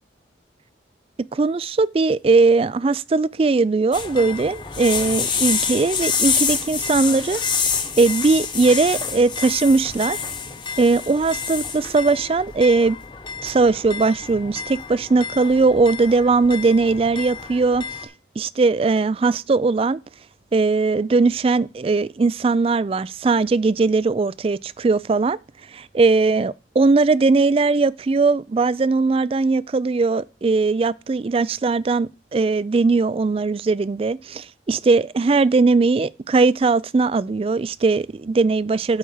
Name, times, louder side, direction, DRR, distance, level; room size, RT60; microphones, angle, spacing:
voice 1, 1.3-7.4 8.0-10.2 10.8-13.0 13.4-17.8 18.4-20.0 20.5-25.4 25.7-39.0, right 3 dB, 30° right, 0.3 m, -19 dB
sound 1, 3.9-18.0, left 6 dB, 25° left, 1.1 m, -28 dB
8.5 x 4.8 x 5.6 m
head